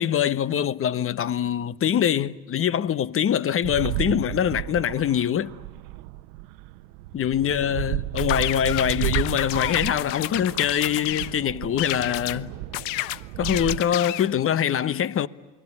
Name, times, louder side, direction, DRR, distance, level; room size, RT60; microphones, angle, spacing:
voice 1, 0.0-5.5 7.1-12.5 13.4-15.3, left 9 dB, 35° left, 1.0 m, -24 dB
sound 1, 3.6-13.8, right 17 dB, 70° right, 0.9 m, -33 dB
sound 2, 8.2-11.3 11.8-12.4 12.7-14.3, left 17 dB, 70° left, 0.8 m, -30 dB
29.0 x 21.0 x 9.8 m
hypercardioid pair, 80°, 40 cm